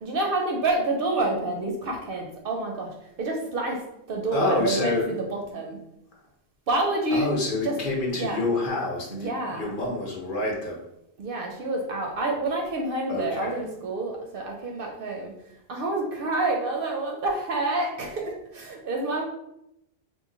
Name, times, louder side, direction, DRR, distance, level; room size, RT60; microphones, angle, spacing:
voice 1, 0.0-2.9 3.2-3.8 4.1-5.8 6.7-7.4 7.6-7.7 8.1-8.5 9.1-9.8 11.2-15.3 15.7-19.2, right 2 dB, 65° right, 1 dB, 0.7 m, -28 dB
voice 2, 4.3-5.1 7.1-10.8 13.1-13.6, left 2 dB, 55° left, -3 dB, 0.9 m, -27 dB
3.0 x 2.0 x 3.7 m, 0.83 s
omnidirectional pair, 1.1 m